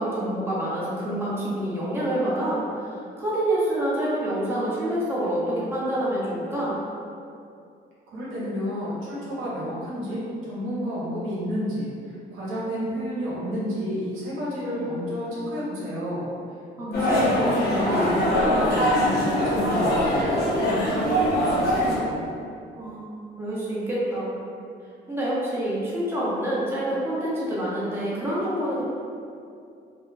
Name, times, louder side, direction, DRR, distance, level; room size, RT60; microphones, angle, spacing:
voice 1, 0.0-6.8 16.8-17.3 22.8-23.1 23.4-24.4 25.1-28.8, right 1 dB, 10° right, -8 dB, 0.9 m, -27 dB
voice 2, 8.1-16.3 16.9-22.2, equal, 85° right, -8 dB, 0.8 m, -31 dB
sound 1, 16.9-21.9, equal, 55° left, 0.8 m, -22 dB
2.3 x 2.1 x 3.2 m, 2.5 s
supercardioid pair, 70°, 21 cm